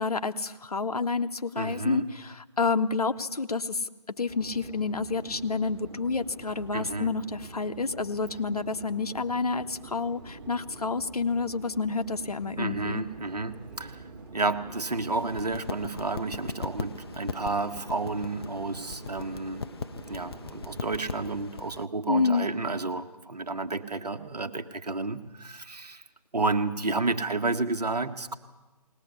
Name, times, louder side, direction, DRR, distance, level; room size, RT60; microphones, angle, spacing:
voice 1, 0.0-3.9 4.2-13.0 22.1-22.5, left 4 dB, 65° left, 8 dB, 1.2 m, -29 dB
voice 2, 1.6-2.1 6.7-7.1 12.6-14.0 14.3-19.7 20.1-26.0 26.3-28.3, right 3 dB, 70° right, 7 dB, 1.7 m, -31 dB
sound 1, 4.3-21.5, right 3 dB, 35° right, 5.1 m, -46 dB
sound 2, 15.1-21.9, left 5 dB, 35° left, 0.7 m, -39 dB
20.5 x 19.0 x 8.4 m, 1.1 s
figure-of-eight pair, 155°, 21 cm